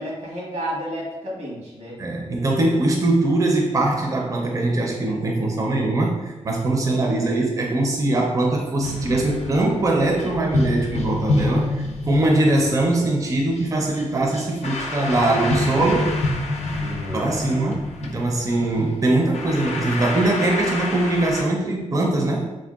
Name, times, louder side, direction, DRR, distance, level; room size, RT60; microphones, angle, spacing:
voice 1, 0.0-2.0 16.8-17.3, equal, 90° right, -4 dB, 1.1 m, -31 dB
voice 2, 2.0-16.2 17.1-22.5, right 2 dB, 30° right, 0 dB, 0.4 m, -22 dB
sound 1, 8.8-21.4, left 2 dB, 70° left, 0.4 m, -28 dB
3.6 x 2.2 x 2.3 m, 1.1 s
cardioid pair, 70°, 12 cm